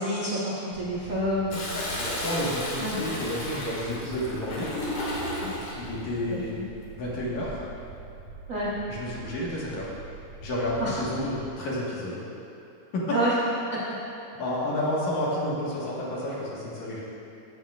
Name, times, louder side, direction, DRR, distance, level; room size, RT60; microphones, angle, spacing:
voice 1, 0.0-1.7 2.8-3.0 5.4-5.5 6.3-6.6 8.5-8.7 10.8-10.9 13.1-13.3 13.7-13.8, right 1 dB, 85° right, -8 dB, 0.7 m, -28 dB
sound 1, 0.7-11.5, right 3 dB, 55° left, 2.5 m, -44 dB
Toilet flush, 1.5-5.8 7.2-7.7, left 1 dB, 85° left, 3.1 m, -34 dB
voice 2, 1.7-4.7 5.7-6.5 7.0-7.6 8.9-9.9 10.4-12.2 12.9-13.2 14.4-17.0, left 1 dB, 70° left, -6 dB, 2.9 m, -30 dB
16.0 x 6.4 x 2.4 m, 2.9 s
omnidirectional pair, 3.5 m